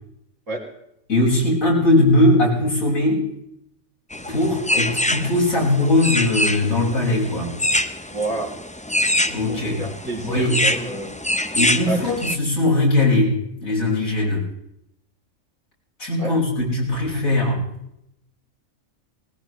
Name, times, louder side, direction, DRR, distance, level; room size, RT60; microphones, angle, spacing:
voice 1, 1.1-3.3 4.3-7.5 9.3-9.8 10.3-10.6 11.5-14.5 16.0-17.6, left 2 dB, 80° left, -3 dB, 5.8 m, -20 dB
sound 1, 4.1-12.4, left 1 dB, 10° left, 0.5 m, -25 dB
voice 2, 8.1-8.6 9.5-11.1 11.9-12.2 16.2-16.4, right 2 dB, 65° right, -1 dB, 3.8 m, -29 dB
20.0 x 19.5 x 3.1 m, 0.78 s
omnidirectional pair, 1.4 m